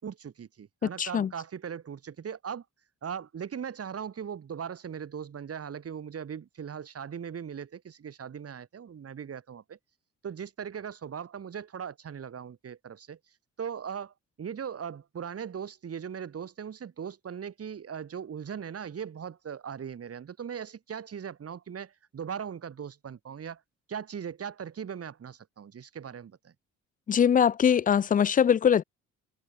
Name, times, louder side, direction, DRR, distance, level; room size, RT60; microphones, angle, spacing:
voice 1, 0.0-2.7 3.0-9.8 10.2-23.6 23.9-26.5, right 7 dB, 50° right, 7.1 m, -39 dB
voice 2, 1.0-1.3 27.1-28.8, left 8 dB, 30° left, 0.4 m, -22 dB
cardioid pair, 90°, 30 cm